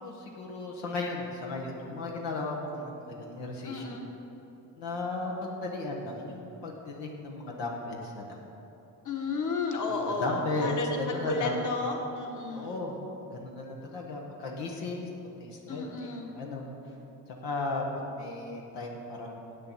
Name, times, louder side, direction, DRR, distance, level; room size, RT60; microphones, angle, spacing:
voice 1, 0.0-4.0 4.8-8.4 9.9-11.6 12.5-13.0 13.3-15.1 15.4-16.7 17.4-19.4, left 2 dB, 90° left, -1 dB, 1.3 m, -35 dB
voice 2, 3.6-4.0 9.0-12.8 15.7-16.3, left 3 dB, 45° left, 2 dB, 1.6 m, -32 dB
8.4 x 6.7 x 7.3 m, 2.9 s
supercardioid pair, 70°, 42 cm